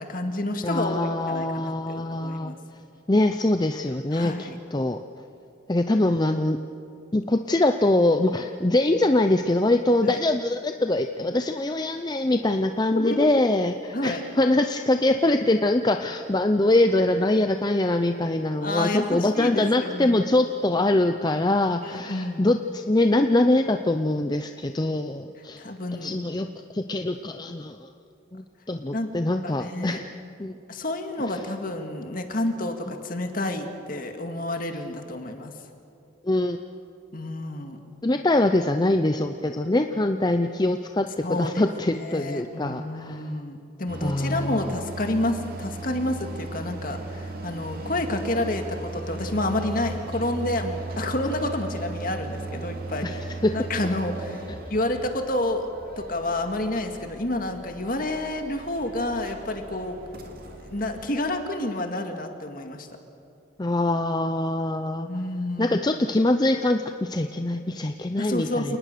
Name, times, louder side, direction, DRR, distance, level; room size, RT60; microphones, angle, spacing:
voice 1, 0.0-2.5 4.1-4.6 10.0-10.2 12.9-13.3 13.9-14.2 18.6-20.1 21.8-22.5 25.6-26.1 28.9-29.1 29.4-30.0 30.7-35.5 37.1-37.8 41.2-41.6 41.9-53.1 53.5-55.7 56.0-60.0 60.7-62.9 65.1-65.8 68.2-68.8, left 1 dB, 45° left, 5 dB, 2.1 m, -29 dB
voice 2, 0.6-2.5 3.1-5.0 5.7-6.6 7.1-25.6 26.0-26.5 26.7-27.9 28.3-30.1 30.4-30.5 31.3-31.4 36.2-36.6 38.0-43.2 44.0-44.7 53.0-53.5 63.6-65.1 65.6-68.8, left 2 dB, 20° left, 7 dB, 0.6 m, -23 dB
sound 1, 43.9-61.1, right 2 dB, 50° right, 2.6 m, -37 dB
28.5 x 19.5 x 6.8 m, 2.6 s
head